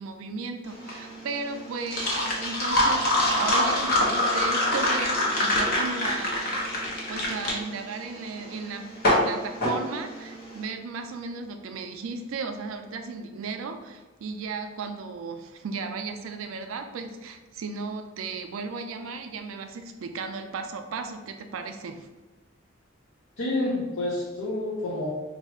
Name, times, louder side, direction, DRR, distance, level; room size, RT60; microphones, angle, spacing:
voice 1, 0.0-6.8 7.1-8.8 9.2-22.1, right 4 dB, 80° right, 6 dB, 0.4 m, -35 dB
sound 1, 0.7-10.5, left 1 dB, 50° left, 0.8 m, -25 dB
voice 2, 23.4-25.1, left 2 dB, 90° left, -6 dB, 0.6 m, -28 dB
2.6 x 2.4 x 4.1 m, 1.2 s
head